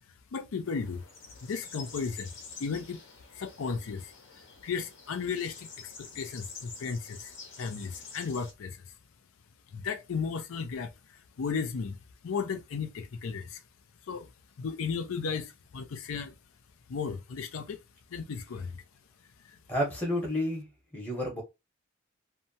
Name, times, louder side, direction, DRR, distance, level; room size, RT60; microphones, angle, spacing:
voice 1, 0.3-1.0 1.4-2.3 2.6-3.0 3.3-4.1 4.6-8.8 9.7-12.0 12.2-13.6 14.1-14.3 14.6-16.3 16.9-17.8 18.1-18.8 19.5-19.6, left 5 dB, 80° left, 0.4 m, -35 dB
sound 1, 0.6-8.5, left 5 dB, 65° left, 0.9 m, -48 dB
voice 2, 19.7-20.7 20.9-21.4, left 1 dB, 10° left, 0.9 m, -30 dB
2.8 x 2.2 x 2.6 m
head